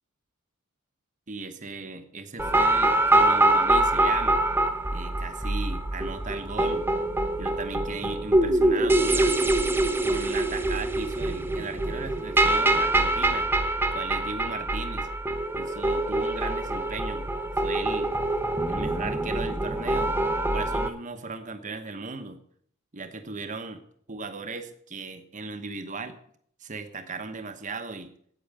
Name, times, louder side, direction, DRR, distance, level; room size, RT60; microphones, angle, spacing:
voice 1, 1.3-4.4 4.9-6.9 7.4-9.4 10.0-13.5 13.9-15.1 15.5-17.3 17.6-18.1 18.7-20.1 20.5-22.4 22.9-23.8 24.1-26.2 26.6-28.1, right 4 dB, 35° right, 8 dB, 1.0 m, -37 dB
sound 1, 2.4-20.9, right 2 dB, 10° right, 0.8 m, -24 dB
8.7 x 8.6 x 8.6 m, 0.63 s
head